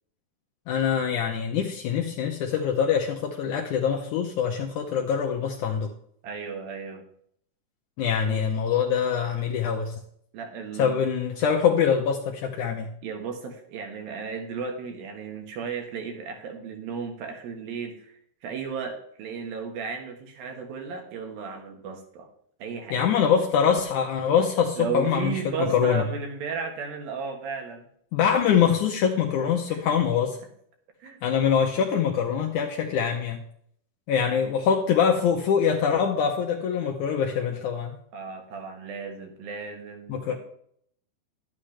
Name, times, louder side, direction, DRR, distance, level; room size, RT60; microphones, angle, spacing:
voice 1, 0.7-5.9 8.0-9.9 10.8-12.9 22.9-26.0 28.1-30.4 31.2-33.4 34.1-38.0 40.1-40.3, left 7 dB, 90° left, 2 dB, 1.7 m, -24 dB
voice 2, 6.2-7.1 8.2-8.4 10.3-11.0 13.0-22.3 22.6-23.1 24.8-27.8 29.7-29.9 31.0-31.2 34.3-34.5 38.1-40.4, right 5 dB, 70° right, 4 dB, 3.1 m, -35 dB
11.5 x 9.5 x 3.3 m, 0.66 s
omnidirectional pair, 4.6 m